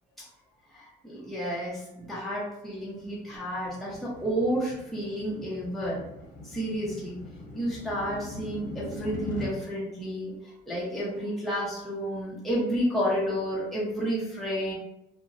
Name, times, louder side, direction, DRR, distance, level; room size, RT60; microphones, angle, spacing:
voice 1, 0.7-6.0 6.4-7.2 7.5-14.7, equal, ahead, -6 dB, 0.7 m, -31 dB
sound 1, 3.1-9.5, left 2 dB, 50° left, 0.7 m, -41 dB
2.4 x 2.0 x 2.5 m, 0.86 s
cardioid pair, 110°, 17 cm